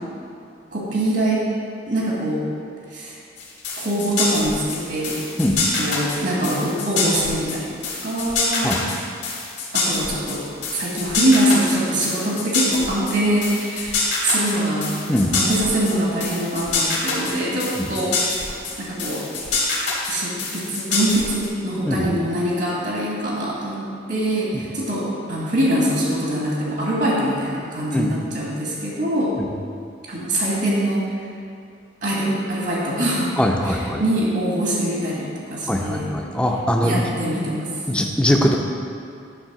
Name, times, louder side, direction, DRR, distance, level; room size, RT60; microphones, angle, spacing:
voice 1, 0.7-1.5 1.9-2.5 2.9-3.2 3.8-5.2 5.8-8.7 9.7-10.4 10.7-14.9 15.3-18.5 18.8-19.3 20.1-29.4 30.1-31.1 32.0-33.3 33.6-36.1 36.8-37.7, right 1 dB, 60° right, -5 dB, 1.4 m, -23 dB
sound 1, 3.4-21.5, left 3 dB, 75° left, 1.7 m, -25 dB
voice 2, 33.4-34.0 35.7-37.1 37.9-38.6, left 1 dB, 5° left, 1 dB, 0.5 m, -21 dB
9.9 x 3.3 x 5.7 m, 2.4 s
head